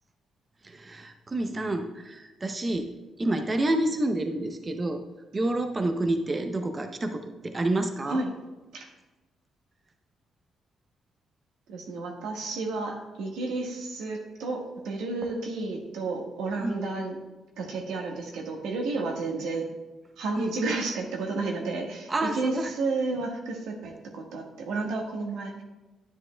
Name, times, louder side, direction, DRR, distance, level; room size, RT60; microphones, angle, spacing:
voice 1, 0.6-2.9 3.2-5.0 5.3-8.2 16.6-16.8 20.4-20.5 22.1-22.7 23.1-23.2, right 1 dB, 30° right, 5 dB, 0.7 m, -28 dB
voice 2, 11.7-17.2 17.6-19.7 20.2-25.6, right 3 dB, 90° right, 1 dB, 1.4 m, -31 dB
10.5 x 9.9 x 2.2 m, 1.1 s
cardioid pair, 90°, 0 cm